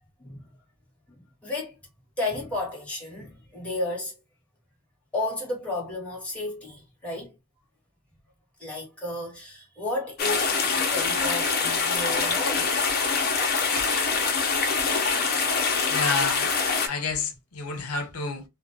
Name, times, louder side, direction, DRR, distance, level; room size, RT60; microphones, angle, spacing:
voice 1, 1.1-1.8 2.2-4.2 5.1-7.3 8.6-12.7 14.4-14.5 16.9-17.1, left 2 dB, 5° left, 1.2 m, -33 dB
sound 1, 10.2-16.9, left 5 dB, 45° left, 0.7 m, -24 dB
voice 2, 15.9-16.5 16.9-18.4, left 4 dB, 85° left, 0.7 m, -29 dB
2.5 x 2.2 x 3.1 m
head